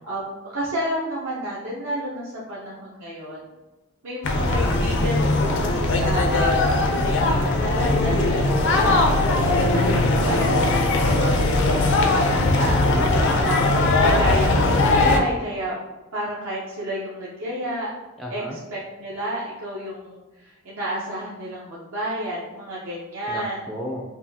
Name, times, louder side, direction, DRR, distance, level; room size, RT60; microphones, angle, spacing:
voice 1, 0.1-3.4 4.0-9.0 9.5-11.5 11.7-11.9 12.2-12.8 13.4-15.7 16.1-17.9 18.3-23.6, equal, 70° right, -7 dB, 0.8 m, -30 dB
sound 1, 4.2-15.2, left 2 dB, 55° left, 0.5 m, -20 dB
voice 2, 10.1-10.6 12.8-13.5 18.2-18.6 23.3-24.0, equal, ahead, -2 dB, 0.3 m, -33 dB
5.4 x 2.4 x 2.7 m, 1.1 s
head